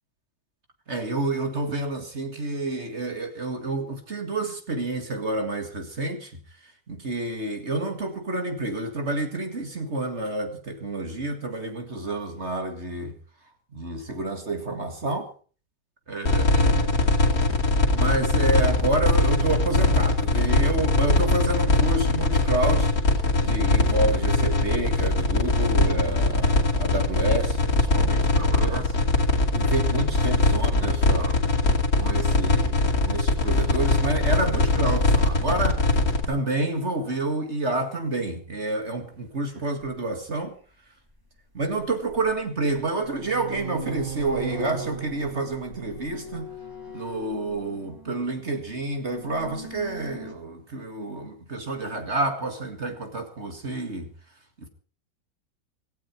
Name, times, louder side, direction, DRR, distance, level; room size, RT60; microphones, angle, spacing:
voice 1, 0.9-6.3 6.6-13.2 13.7-15.3 16.1-17.0 17.9-29.0 29.5-31.4 31.9-36.0 36.3-40.6 41.5-46.5 46.9-54.1 54.6-54.7, right 2 dB, 35° right, 2.2 m, -29 dB
sound 1, 16.3-36.3, left 2 dB, 50° left, 3.0 m, -21 dB
sound 2, 39.8-39.9 41.6-42.4 42.7-48.2 49.0-50.3, right 4 dB, 10° right, 2.4 m, -38 dB
17.0 x 16.5 x 4.6 m
omnidirectional pair, 2.0 m